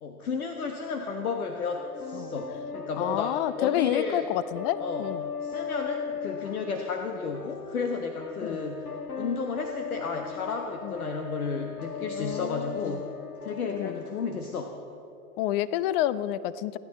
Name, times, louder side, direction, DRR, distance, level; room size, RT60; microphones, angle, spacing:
voice 1, 0.0-4.3 4.8-5.1 5.4-8.9 9.1-13.1 13.4-14.8, left 4 dB, 70° left, 5 dB, 1.3 m, -33 dB
sound 1, 1.8-14.8, left 6 dB, 90° left, 0.9 m, -38 dB
voice 2, 3.0-5.3 8.4-8.7 10.8-10.9 12.1-13.0 13.7-14.0 15.4-16.8, left 13 dB, 40° left, 18 dB, 0.6 m, -29 dB
29.5 x 11.5 x 4.2 m, 3.0 s
figure-of-eight pair, 90°, 44 cm